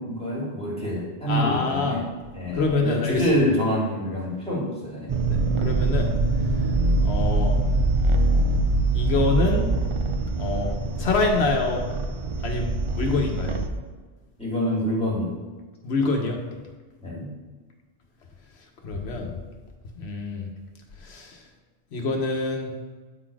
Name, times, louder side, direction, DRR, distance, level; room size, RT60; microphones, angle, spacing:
voice 1, 0.0-2.0 2.3-5.1 14.4-15.3 17.0-17.3, left 1 dB, 5° left, -6 dB, 2.1 m, -26 dB
voice 2, 1.3-2.0 2.5-3.2 5.3-6.1 7.0-7.6 8.9-9.7 10.4-10.7 11.0-11.8 12.4-13.6 15.8-16.4 18.8-19.4 19.9-20.5 21.0-21.4 21.9-22.7, left 3 dB, 85° left, 2 dB, 1.2 m, -25 dB
sound 1, 5.1-13.7, right 2 dB, 40° right, 0.5 m, -23 dB
8.3 x 4.1 x 4.7 m, 1.4 s
omnidirectional pair, 1.1 m